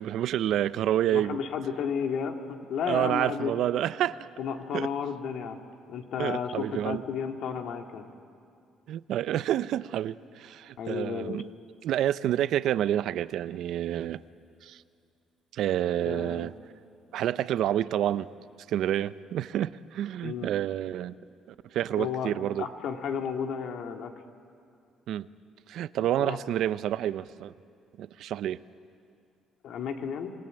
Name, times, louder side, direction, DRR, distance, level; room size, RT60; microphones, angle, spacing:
voice 1, 0.0-1.4 2.9-4.3 4.7-4.9 6.2-7.0 8.9-11.5 11.8-14.2 14.6-14.8 15.5-16.5 17.1-18.3 18.7-21.1 21.7-22.7 25.1-25.3 25.7-27.5 28.0-28.6, right 11 dB, 70° right, 16 dB, 0.6 m, -28 dB
voice 2, 1.1-3.5 4.4-5.6 5.9-8.0 10.8-11.4 16.0-16.5 20.2-20.5 22.0-22.3 22.6-24.1 26.2-26.4 29.6-30.3, left 7 dB, 70° left, 4 dB, 2.0 m, -33 dB
27.0 x 18.5 x 8.9 m, 2.4 s
cardioid pair, 100°, 0 cm